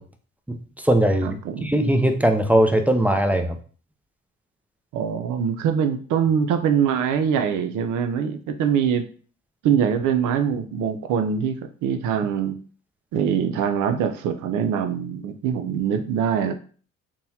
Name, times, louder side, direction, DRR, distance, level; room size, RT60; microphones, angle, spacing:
voice 1, 0.5-3.6, right 1 dB, 5° right, 5 dB, 0.4 m, -20 dB
voice 2, 1.2-1.7 4.9-9.0 9.6-11.6 11.8-12.6 13.1-16.5, right 7 dB, 85° right, 8 dB, 0.5 m, -23 dB
3.7 x 2.9 x 2.7 m, 0.42 s
cardioid pair, 90°, 30 cm